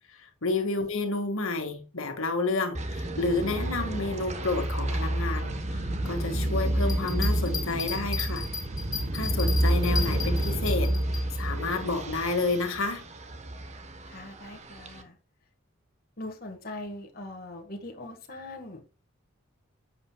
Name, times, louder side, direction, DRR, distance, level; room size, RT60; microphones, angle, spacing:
voice 1, 0.1-8.5 9.1-10.9 11.4-13.1, left 3 dB, 75° left, 1.9 m, -30 dB
sound 1, 2.7-15.0, right 1 dB, 30° right, 1.2 m, -29 dB
Bell, 6.8-11.2 11.7-11.8, left 6 dB, 20° left, 2.3 m, -35 dB
voice 2, 14.1-15.2 16.2-18.9, left 2 dB, 45° left, 1.7 m, -41 dB
11.0 x 7.9 x 2.3 m
head